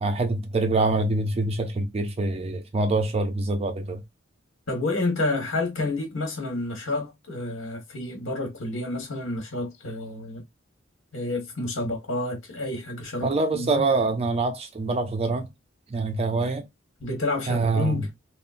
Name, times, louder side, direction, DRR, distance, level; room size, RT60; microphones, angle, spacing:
voice 1, 0.0-4.0 13.2-15.5 15.9-16.7 17.5-18.1, right 3 dB, 30° right, 0.4 m, -25 dB
voice 2, 4.7-10.4 11.1-13.8 17.0-18.1, left 2 dB, 75° left, 1.4 m, -29 dB
3.6 x 2.0 x 2.5 m
head